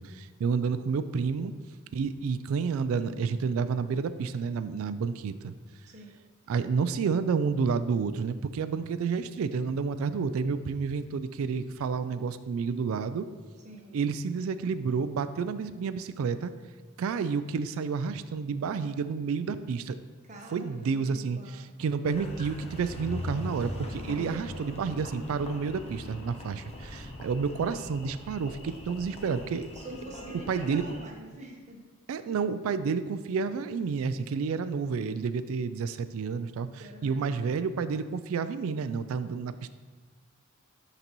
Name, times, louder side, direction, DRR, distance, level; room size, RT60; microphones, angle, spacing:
voice 1, 0.0-1.5 1.9-5.5 6.5-13.3 13.9-16.5 17.0-20.0 20.5-21.4 21.8-29.7 30.5-30.8 32.1-39.7, right 5 dB, 70° right, 12 dB, 0.3 m, -30 dB
voice 2, 5.9-6.2 13.6-13.9 20.2-21.7 24.0-24.5 24.9-25.1 29.7-31.8 32.1-32.2 36.8-37.6, right 1 dB, 35° right, 0 dB, 1.0 m, -45 dB
Engine, 22.1-31.0, left 1 dB, 30° left, 0.7 m, -41 dB
11.0 x 4.0 x 3.0 m, 1.4 s
head